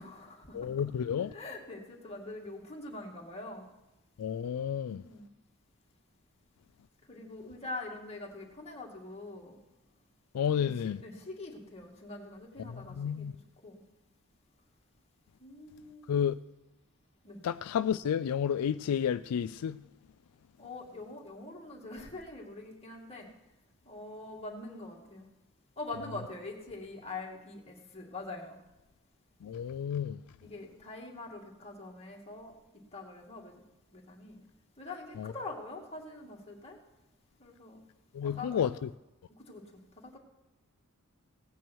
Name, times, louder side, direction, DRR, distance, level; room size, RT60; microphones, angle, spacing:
voice 1, 0.0-0.9 1.2-3.7 4.9-5.3 7.1-9.6 10.5-10.7 11.0-13.3 13.6-13.8 15.4-16.3 17.2-17.4 20.6-23.3 23.9-25.3 25.8-28.6 30.4-32.5 32.9-33.5 33.9-34.4 34.8-36.8 37.4-37.8 38.2-38.7 39.3-40.2, left 2 dB, 30° left, 2.2 m, -44 dB
voice 2, 0.5-1.3 4.2-5.0 10.3-11.0 12.6-13.3 16.1-16.3 17.4-19.8 29.4-30.2 35.2-35.3 38.1-38.9, left 8 dB, 85° left, 0.3 m, -31 dB
16.5 x 9.2 x 4.6 m
head